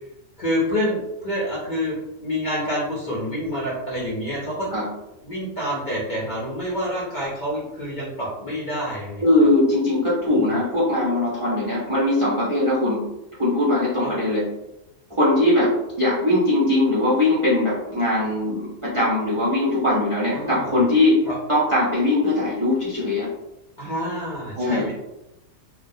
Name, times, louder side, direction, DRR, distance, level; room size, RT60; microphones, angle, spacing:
voice 1, 0.4-4.7 5.2-9.2 10.3-10.6 14.0-14.1 20.3-20.8 21.3-21.4 23.8-24.9, equal, 55° left, -7 dB, 0.5 m, -27 dB
voice 2, 9.2-13.0 13.4-14.4 15.1-21.2 21.5-23.3 24.6-24.8, left 2 dB, 55° right, -9 dB, 0.3 m, -20 dB
2.2 x 2.2 x 2.6 m, 0.92 s
omnidirectional pair, 1.5 m